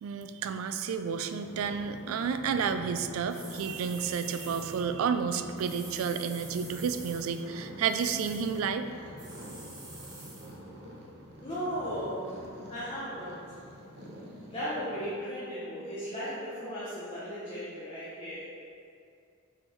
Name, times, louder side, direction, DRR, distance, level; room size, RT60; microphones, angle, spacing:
voice 1, 0.0-8.9, right 6 dB, 75° right, 9 dB, 0.3 m, -31 dB
sound 1, 1.4-15.1, equal, 50° right, 0.9 m, -47 dB
sound 2, 3.3-4.8 5.6-7.4 7.9-8.6 9.2-10.5, right 2 dB, 20° right, 1.0 m, -47 dB
voice 2, 11.4-12.4 12.7-13.4 14.5-18.5, equal, 25° left, -10 dB, 1.0 m, -36 dB
4.8 x 4.4 x 4.4 m, 2.4 s
head